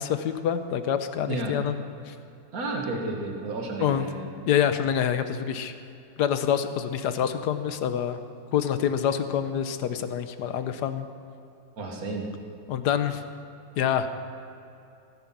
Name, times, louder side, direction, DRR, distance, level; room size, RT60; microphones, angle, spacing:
voice 1, 0.0-2.1 3.8-4.1 4.4-5.7 6.2-8.2 8.5-11.1 12.7-13.2 13.8-14.1, left 9 dB, 65° left, 10 dB, 1.3 m, -26 dB
voice 2, 1.3-1.6 2.5-4.3 11.8-12.3, right 2 dB, 50° right, 0 dB, 2.3 m, -32 dB
17.0 x 10.0 x 6.0 m, 2.8 s
omnidirectional pair, 2.0 m